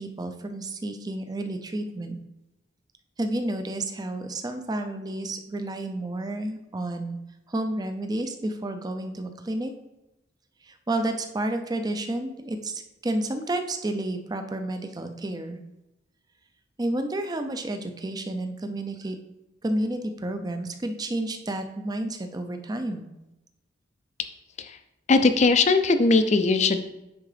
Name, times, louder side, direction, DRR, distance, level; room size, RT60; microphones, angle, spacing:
voice 1, 0.0-2.2 3.2-7.2 7.5-9.7 10.6-15.6 16.8-19.2 19.6-23.1, right 1 dB, 20° right, 6 dB, 0.4 m, -30 dB
voice 2, 25.1-26.9, left 3 dB, 35° left, 9 dB, 0.4 m, -20 dB
9.5 x 3.7 x 3.3 m, 0.94 s
head